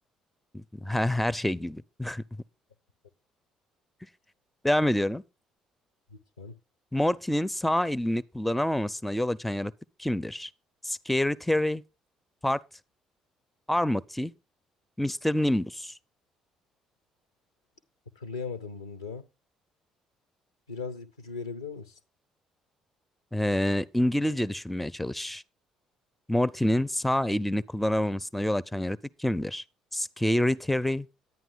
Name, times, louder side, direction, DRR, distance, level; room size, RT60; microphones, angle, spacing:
voice 1, 0.5-2.2 4.6-5.2 6.9-9.7 10.0-10.5 10.8-11.8 12.4-12.6 13.7-14.3 15.0-15.9 23.3-25.4 26.3-29.6 29.9-31.1, left 1 dB, 5° left, 0.5 m, -27 dB
voice 2, 6.1-6.6 18.2-19.3 20.7-21.9, left 5 dB, 80° left, 0.7 m, -38 dB
10.5 x 9.2 x 3.9 m
figure-of-eight pair, 45°, 2 cm